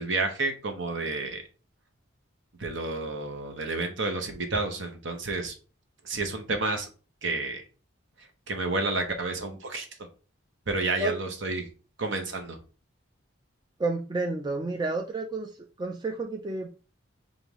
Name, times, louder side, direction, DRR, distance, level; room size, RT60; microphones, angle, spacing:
voice 1, 0.0-1.4 2.6-5.5 6.0-6.9 7.2-7.6 8.5-9.9 10.7-11.7 12.0-12.6, right 3 dB, 65° right, 0.9 m, -30 dB
voice 2, 13.8-15.5 15.8-16.7, right 2 dB, 20° right, 0.3 m, -30 dB
5.3 x 2.6 x 3.0 m
head